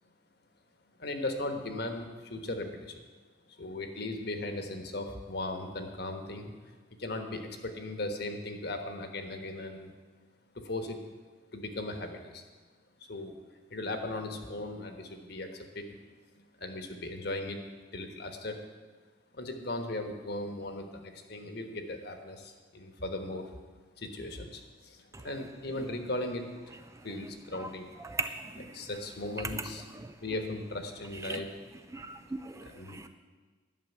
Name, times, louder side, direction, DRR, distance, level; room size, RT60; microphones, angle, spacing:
voice 1, 1.0-3.0 3.5-6.5 7.0-9.9 10.5-11.0 11.5-12.4 13.0-13.4 13.7-15.9 16.6-17.6 17.9-18.6 19.3-23.6 24.0-27.9 28.7-29.8 30.2-31.5 32.6-33.1, left 2 dB, 55° left, 5 dB, 1.3 m, -37 dB
voice 2, 28.0-28.8 29.5-30.1 31.2-31.4 31.9-33.1, right 3 dB, 15° right, 8 dB, 0.4 m, -39 dB
11.5 x 6.7 x 9.3 m, 1.4 s
head